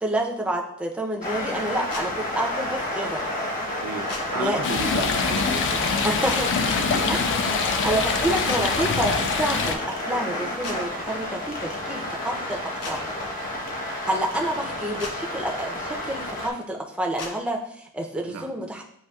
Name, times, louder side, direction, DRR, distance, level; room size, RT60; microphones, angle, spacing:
voice 1, 0.0-3.2 4.3-4.6 6.0-6.5 7.1-7.2 7.6-12.6 12.9-13.0 14.1-18.8, right 1 dB, 5° right, 1 dB, 0.4 m, -28 dB
sound 1, 1.2-16.5, left 1 dB, 40° left, 0.8 m, -30 dB
sound 2, 1.9-2.1 4.1-4.2 6.3-6.4 8.4-8.6 10.6-10.8 12.8-13.0 15.0-15.1 17.2-17.3, left 2 dB, 85° left, 0.8 m, -34 dB
voice 2, 3.8-6.0 6.6-7.1 18.3-18.5, right 5 dB, 85° right, 6 dB, 0.5 m, -34 dB
Stream, 4.6-9.7, left 5 dB, 55° left, 0.4 m, -25 dB
7.9 x 2.7 x 2.2 m, 0.72 s
head